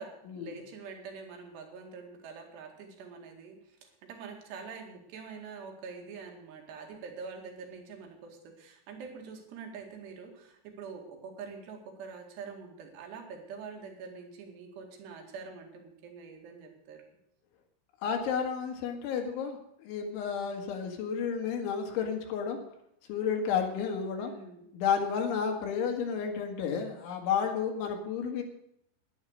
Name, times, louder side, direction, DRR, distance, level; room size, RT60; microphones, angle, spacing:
voice 1, 0.0-17.0 24.2-24.7, right 5 dB, 65° right, 2 dB, 4.1 m, -45 dB
voice 2, 18.0-22.6 23.1-24.3 24.7-28.4, left 7 dB, 80° left, 3 dB, 4.1 m, -31 dB
11.0 x 11.0 x 6.6 m, 0.76 s
omnidirectional pair, 5.5 m